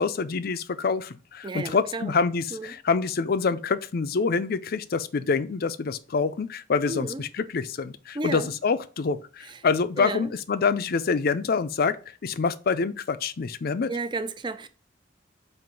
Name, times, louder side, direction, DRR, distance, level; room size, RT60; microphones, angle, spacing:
voice 1, 0.0-12.0 12.2-13.9, left 5 dB, 55° left, 0.5 m, -26 dB
voice 2, 1.4-2.1 2.5-2.7 6.9-7.2 8.1-8.5 9.5-9.6 10.0-10.3 13.9-14.7, right 2 dB, 25° right, 0.4 m, -32 dB
7.7 x 2.6 x 5.2 m
head